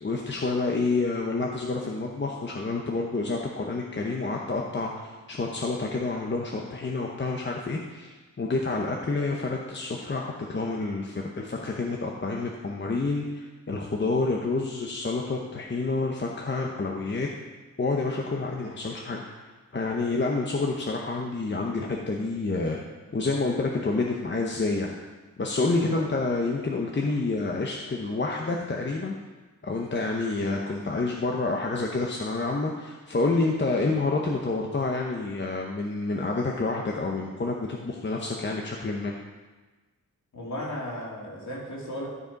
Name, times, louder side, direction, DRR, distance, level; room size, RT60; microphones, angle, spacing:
voice 1, 0.0-4.9 5.3-17.3 17.8-22.8 23.1-24.9 25.4-29.1 29.6-39.1, left 3 dB, 35° left, 0 dB, 0.9 m, -28 dB
voice 2, 25.7-26.0 40.3-42.1, left 1 dB, 60° left, -4 dB, 2.7 m, -35 dB
12.5 x 5.0 x 5.2 m, 1.2 s
wide cardioid pair, 115°, 32 cm